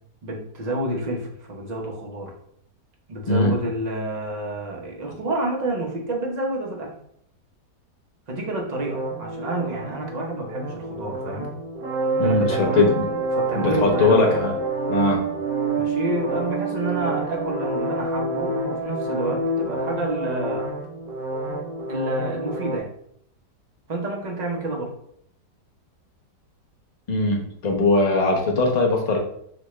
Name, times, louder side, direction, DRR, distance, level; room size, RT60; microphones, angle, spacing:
voice 1, 0.2-2.4 3.1-6.9 8.3-11.5 12.2-12.9 13.3-14.3 15.7-20.7 21.9-22.9 23.9-24.9, right 1 dB, 40° right, 0 dB, 0.6 m, -29 dB
sound 1, 8.8-22.8, right 3 dB, 85° right, 1.2 m, -28 dB
voice 2, 12.2-13.1 13.5-14.5 14.9-15.2 27.1-29.2, left 2 dB, 45° left, 0 dB, 0.5 m, -20 dB
6.2 x 2.3 x 3.1 m, 0.69 s
omnidirectional pair, 1.8 m